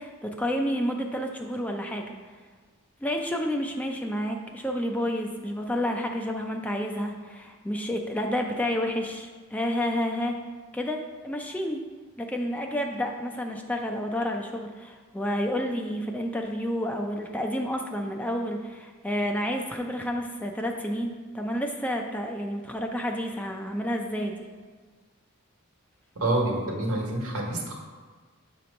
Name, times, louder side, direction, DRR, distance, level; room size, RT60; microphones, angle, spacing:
voice 1, 0.0-2.1 3.0-10.4 10.7-11.8 12.2-24.5, equal, 5° left, 2 dB, 0.3 m, -30 dB
voice 2, 26.1-27.7, right 1 dB, 85° right, 0 dB, 1.1 m, -27 dB
7.2 x 2.9 x 5.2 m, 1.5 s
head